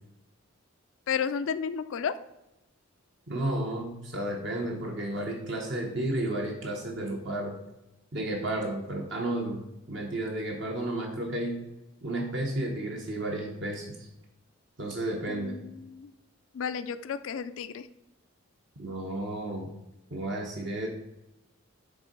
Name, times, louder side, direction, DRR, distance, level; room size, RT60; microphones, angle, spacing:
voice 1, 1.1-2.1 15.3-16.1 16.5-17.9, left 7 dB, 70° left, 12 dB, 0.4 m, -32 dB
voice 2, 3.3-7.6 8.1-9.6 9.9-11.6 12.0-14.0 14.8-15.5 18.8-19.7 20.1-20.9, right 1 dB, 55° right, 0 dB, 0.9 m, -32 dB
6.8 x 3.7 x 5.2 m, 0.94 s
head